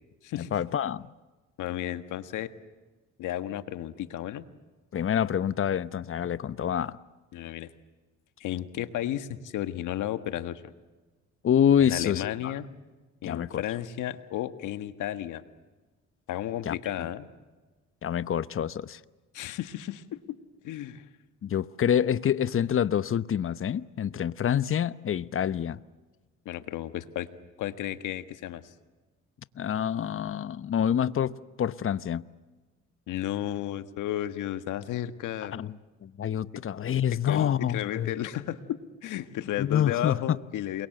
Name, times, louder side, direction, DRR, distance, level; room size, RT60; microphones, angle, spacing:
voice 1, 0.4-1.1 4.9-7.0 11.4-12.5 13.2-13.6 16.7-16.8 18.0-19.0 21.4-25.8 29.6-32.2 35.5-35.8 36.0-38.1 39.6-40.4, left 9 dB, 45° left, 0.9 m, -27 dB
voice 2, 1.6-2.5 3.2-4.4 7.3-7.7 8.4-10.6 11.8-12.7 13.2-15.4 16.3-17.3 19.3-20.2 20.6-21.0 26.4-27.3 27.6-28.7 33.1-35.6 37.3-40.9, left 12 dB, 85° left, 1.6 m, -33 dB
29.0 x 23.0 x 7.9 m
cardioid pair, 90°, 30 cm